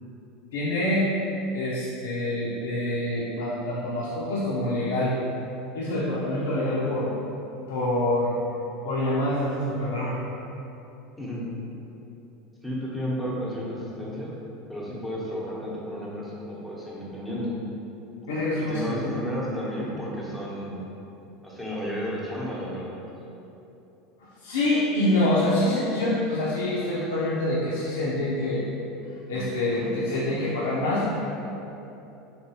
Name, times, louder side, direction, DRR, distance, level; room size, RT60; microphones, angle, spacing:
voice 1, 0.5-1.1 1.5-5.1 5.7-7.1 7.7-8.3 8.8-10.2 18.3-19.0 24.4-28.6 29.3-31.2, left 1 dB, 85° left, -8 dB, 0.4 m, -26 dB
voice 2, 12.6-14.3 14.7-17.6 18.6-20.8 21.4-23.0, equal, ahead, -7 dB, 0.9 m, -32 dB
3.2 x 2.9 x 2.8 m, 2.9 s
hypercardioid pair, 95°, 0 cm